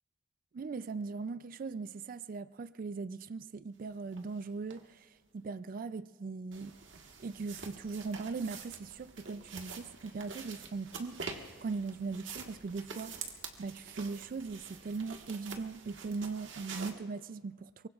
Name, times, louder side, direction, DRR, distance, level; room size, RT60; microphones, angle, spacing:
voice 1, 0.5-6.8 7.2-13.1 13.6-17.9, right 4 dB, 45° right, 0.4 m, -39 dB
sound 1, 4.1-4.2 4.7-4.8 6.5-16.9, right 5 dB, 85° right, 1.5 m, -47 dB
23.5 x 23.0 x 2.4 m
head